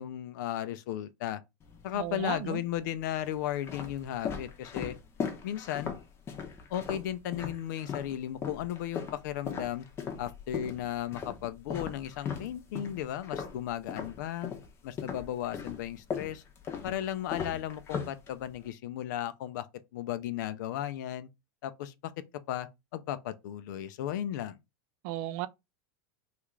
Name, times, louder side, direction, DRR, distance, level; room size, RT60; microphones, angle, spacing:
voice 1, 0.0-1.4 1.8-4.9 5.4-5.9 6.7-9.8 10.2-14.5 14.8-16.4 16.8-19.7 19.9-21.3 21.6-22.1 22.5-24.6, left 11 dB, 70° left, 0.5 m, -35 dB
sound 1, 1.6-2.3 3.0-8.1 8.4-14.7 15.0-18.7, left 6 dB, 25° left, 0.7 m, -38 dB
voice 2, 1.9-2.6 25.0-25.5, right 14 dB, 50° right, 0.3 m, -35 dB
3.4 x 2.4 x 3.1 m
supercardioid pair, 140°, 10 cm